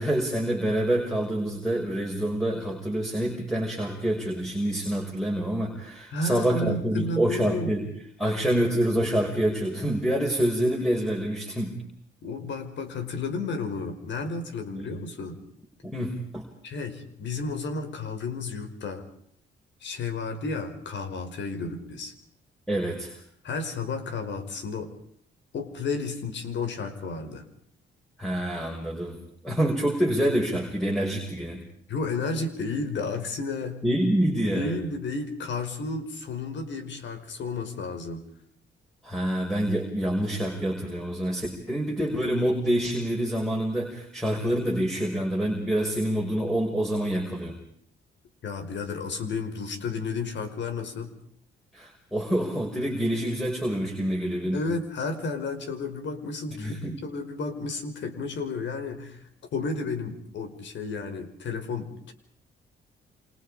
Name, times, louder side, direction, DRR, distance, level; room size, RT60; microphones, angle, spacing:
voice 1, 0.0-7.9 8.2-11.8 14.7-14.9 15.8-16.4 22.7-23.2 28.2-29.2 29.4-31.6 33.8-34.7 39.0-47.5 51.7-54.6 56.6-57.0, right 1 dB, ahead, 0 dB, 5.7 m, -27 dB
voice 2, 6.1-7.7 12.2-15.4 16.6-19.0 19.8-22.1 23.4-24.9 25.5-27.5 31.9-33.8 34.5-38.2 48.4-51.1 54.4-59.2 59.5-62.1, left 3 dB, 65° left, 7 dB, 5.1 m, -32 dB
29.0 x 26.5 x 5.0 m, 0.66 s
cardioid pair, 90°, 20 cm